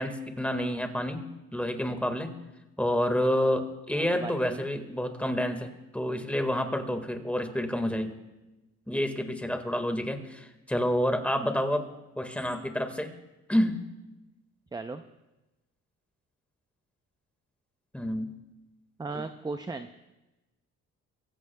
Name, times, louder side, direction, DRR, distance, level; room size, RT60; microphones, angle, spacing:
voice 1, 0.0-2.4 2.8-8.2 8.9-11.9 12.1-13.1 13.5-13.8 17.9-18.4 19.1-19.2, equal, 5° left, 6 dB, 1.6 m, -29 dB
voice 2, 3.9-4.7 14.7-15.0 19.0-19.9, right 3 dB, 15° right, 9 dB, 0.5 m, -36 dB
23.5 x 15.0 x 2.2 m, 1.0 s
cardioid pair, 90°, 30 cm